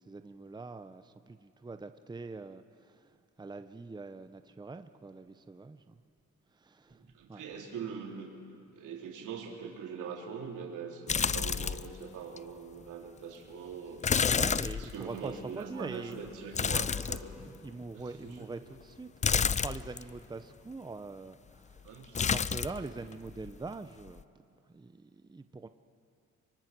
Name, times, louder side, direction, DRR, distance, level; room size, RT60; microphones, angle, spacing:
voice 1, 0.0-6.0 6.5-7.4 14.3-16.2 17.4-21.8 22.2-24.2 24.7-25.7, right 3 dB, 15° right, 9 dB, 0.8 m, -44 dB
voice 2, 7.1-8.3 8.7-14.2 14.8-17.3 17.9-18.5 21.8-22.4, right 6 dB, 80° right, 0 dB, 3.9 m, -42 dB
sound 1, 11.1-12.0 12.4-12.5 14.0-15.3 16.5-17.7 19.2-20.0 22.1-22.9 23.1-23.7 24.1-24.2, left 6 dB, 25° left, 0.4 m, -30 dB
25.0 x 24.0 x 6.1 m, 2.5 s
cardioid pair, 90°, 30 cm